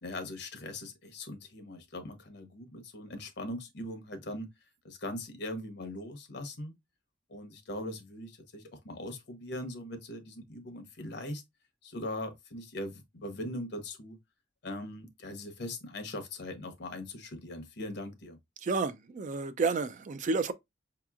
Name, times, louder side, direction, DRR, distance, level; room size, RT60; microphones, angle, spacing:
voice 1, 0.0-4.5 4.8-6.7 7.3-11.4 11.8-14.2 14.6-18.4, left 1 dB, 65° left, 0.9 m, -40 dB
voice 2, 18.6-20.5, right 4 dB, 45° right, 0.4 m, -30 dB
5.0 x 2.9 x 2.3 m
head